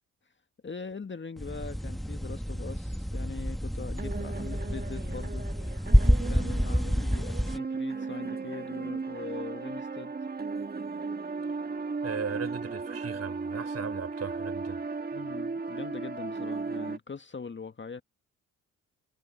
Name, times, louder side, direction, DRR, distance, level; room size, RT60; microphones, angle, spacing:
voice 1, 0.6-5.5 6.3-10.1 15.1-18.0, left 5 dB, 30° left, 1.9 m, -41 dB
sound 1, 0.9-1.0 4.0-17.0, right 4 dB, 25° right, 1.6 m, -36 dB
sound 2, 1.4-7.6, equal, ahead, 2.0 m, -28 dB
voice 2, 12.0-14.8, right 6 dB, 45° right, 4.9 m, -37 dB
supercardioid pair, 55°, 36 cm